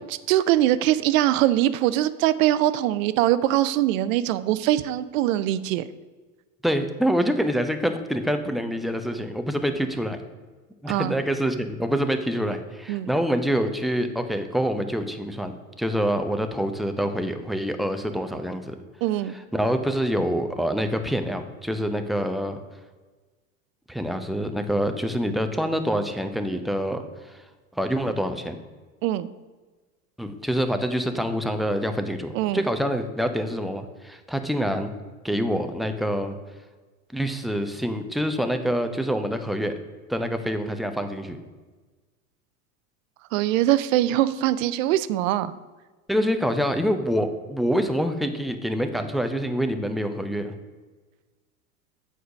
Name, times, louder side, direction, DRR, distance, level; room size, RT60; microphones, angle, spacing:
voice 1, 0.3-5.9 10.9-11.2 12.9-13.1 19.0-19.4 29.0-29.3 32.3-32.6 43.3-45.5, right 13 dB, 60° right, 15 dB, 0.6 m, -22 dB
voice 2, 6.6-10.2 10.8-15.5 15.8-18.8 19.5-22.6 23.9-27.4 27.8-28.6 30.2-34.9 35.2-36.4 37.1-39.7 40.1-41.4 46.1-50.5, equal, ahead, 6 dB, 0.6 m, -26 dB
7.9 x 4.9 x 6.1 m, 1.3 s
hypercardioid pair, 90°, 44 cm